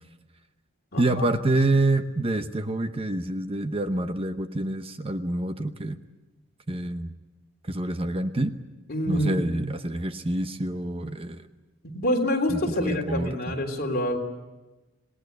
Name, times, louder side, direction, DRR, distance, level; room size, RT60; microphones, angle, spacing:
voice 1, 1.0-6.0 6.7-7.1 7.6-8.6 9.1-11.5 12.5-13.5, right 2 dB, 30° right, 9 dB, 0.9 m, -27 dB
voice 2, 8.9-9.4 11.8-14.2, left 1 dB, 50° left, 1 dB, 3.3 m, -26 dB
27.0 x 19.5 x 8.0 m, 1.1 s
head